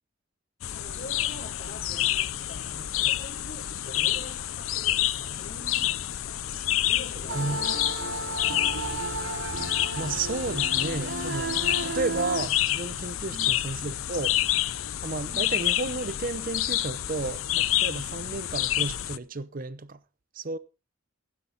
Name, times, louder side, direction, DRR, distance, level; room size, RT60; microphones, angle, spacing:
sound 1, 0.6-19.2, left 13 dB, 80° left, 0.6 m, -29 dB
voice 1, 0.7-6.4 6.9-8.7 13.3-13.5 15.3-15.6, left 1 dB, 35° left, 5.1 m, -45 dB
voice 2, 7.3-7.6 9.9-14.4 15.0-20.0 20.3-20.6, right 3 dB, 45° right, 0.8 m, -32 dB
sound 2, 7.3-12.5, right 2 dB, 65° right, 2.4 m, -33 dB
15.0 x 12.5 x 3.9 m
head